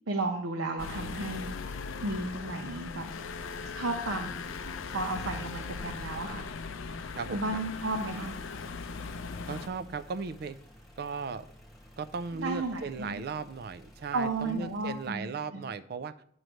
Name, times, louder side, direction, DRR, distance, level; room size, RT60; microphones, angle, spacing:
voice 1, 0.1-1.7 2.0-3.1 3.7-4.4 4.9-6.5 7.3-8.4 12.3-13.2 14.1-15.6, right 2 dB, 85° right, 4 dB, 0.8 m, -33 dB
sound 1, 0.8-9.7, left 5 dB, 80° left, 0.5 m, -39 dB
sound 2, 3.0-15.1, equal, ahead, 1.2 m, -54 dB
voice 2, 7.2-7.6 9.5-10.6 11.0-11.5 12.0-16.2, right 4 dB, 50° right, 14 dB, 0.4 m, -37 dB
9.1 x 3.2 x 6.2 m, 0.66 s
head